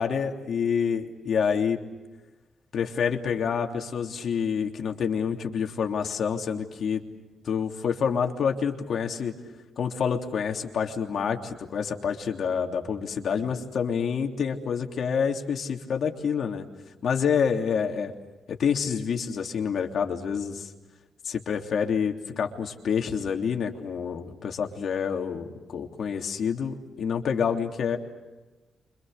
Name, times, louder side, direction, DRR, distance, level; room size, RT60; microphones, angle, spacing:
voice 1, 0.0-1.8 2.7-7.0 7.4-9.3 9.8-16.6 17.0-18.1 18.5-20.7 21.2-28.0, left 6 dB, 65° left, 3 dB, 3.2 m, -27 dB
29.5 x 26.0 x 6.8 m, 1.2 s
cardioid pair, 65°, 0 cm